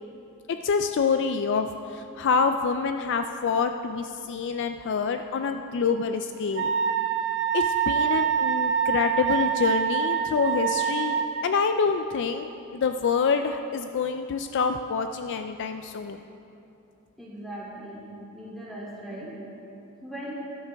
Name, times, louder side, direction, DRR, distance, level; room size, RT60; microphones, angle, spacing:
voice 1, 0.5-6.7 7.5-16.2, left 5 dB, 55° left, 7 dB, 0.4 m, -26 dB
Wind instrument woodwind instrument, 6.5-11.5, right 8 dB, 50° right, 0.5 m, -25 dB
voice 2, 17.2-18.1 18.3-19.4 20.0-20.4, right 1 dB, ahead, -8 dB, 2.8 m, -38 dB
13.5 x 12.0 x 3.4 m, 2.8 s
head